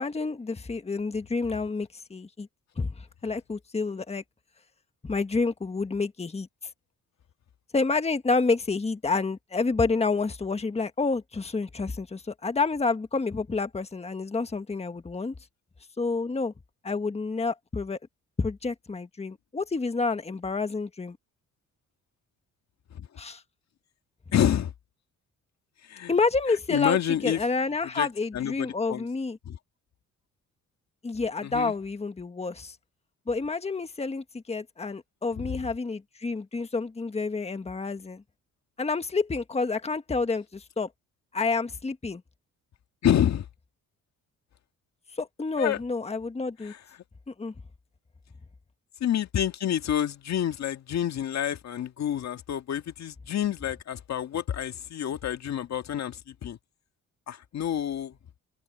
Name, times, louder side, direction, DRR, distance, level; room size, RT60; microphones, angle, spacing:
voice 1, 0.0-2.5 2.8-2.9 3.2-4.2 5.0-6.5 7.7-15.3 16.0-16.5 16.8-18.0 18.4-21.2 23.2-23.4 26.1-27.0 27.2-29.4 31.0-32.7 33.3-38.2 38.8-40.9 41.3-42.2 45.2-46.7 47.3-47.5, left 4 dB, 20° left, 1.5 m, -29 dB
voice 2, 24.3-24.7 25.8-26.1 26.7-27.4 28.0-28.1 28.3-29.1 29.5-29.6 31.4-31.7 35.4-35.5 43.0-43.5 45.6-45.8 46.6-46.8 49.0-56.6 57.3-58.2, left 10 dB, 60° left, 1.9 m, -28 dB
cardioid pair, 90°, 30 cm